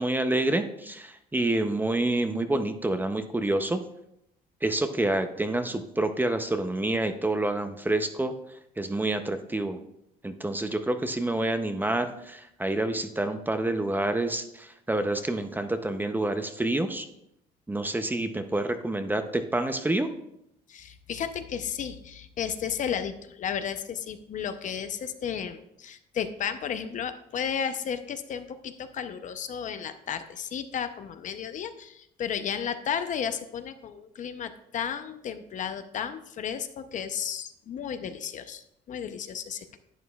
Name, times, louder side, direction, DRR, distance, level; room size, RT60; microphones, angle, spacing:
voice 1, 0.0-3.8 4.6-8.4 8.8-9.8 10.2-17.1 17.7-20.1, right 2 dB, 10° right, 8 dB, 0.5 m, -28 dB
voice 2, 20.7-39.8, left 8 dB, 50° left, 10 dB, 0.6 m, -33 dB
11.0 x 8.4 x 2.3 m, 0.79 s
cardioid pair, 110°, 17 cm